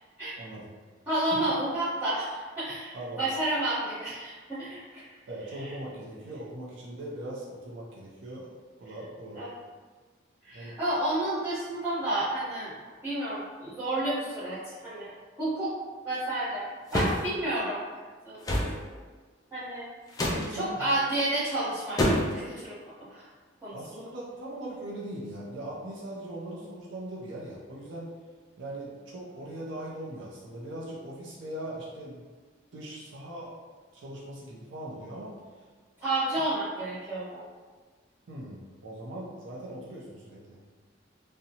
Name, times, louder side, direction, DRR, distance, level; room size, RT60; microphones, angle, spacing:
voice 1, 0.3-0.7 1.3-1.5 2.9-3.3 5.3-8.5 8.8-9.4 10.5-10.8 20.2-20.9 23.7-28.1 28.6-32.2 32.7-35.4 38.3-40.6, right 1 dB, 70° right, -4 dB, 0.5 m, -40 dB
voice 2, 1.1-5.0 5.6-5.7 9.3-9.5 10.4-12.7 13.0-15.1 15.4-15.7 16.0-16.7 16.9-17.8 18.2-18.4 19.5-19.9 20.5-22.0 22.3-22.8 23.1-23.3 23.6-24.0 36.0-37.5, right 1 dB, 10° right, -16 dB, 0.8 m, -30 dB
sound 1, 16.9-17.2 18.4-18.7 20.1-20.5 22.0-22.4, left 1 dB, 20° left, 0.3 m, -25 dB
2.7 x 2.1 x 2.7 m, 1.4 s
head